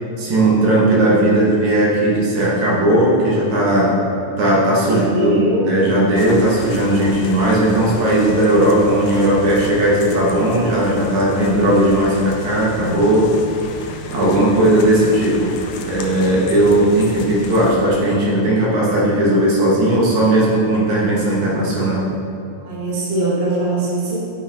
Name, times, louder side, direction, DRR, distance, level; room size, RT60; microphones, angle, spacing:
voice 1, 0.2-4.0 4.4-13.3 13.8-15.5 15.8-22.1, right 1 dB, 75° right, -5 dB, 2.7 m, -16 dB
voice 2, 4.8-5.7 22.6-24.2, right 1 dB, 40° right, -6 dB, 0.8 m, -21 dB
sound 1, 6.1-17.7, left 4 dB, 90° left, 2.1 m, -34 dB
10.5 x 5.2 x 3.4 m, 2.5 s
omnidirectional pair, 3.3 m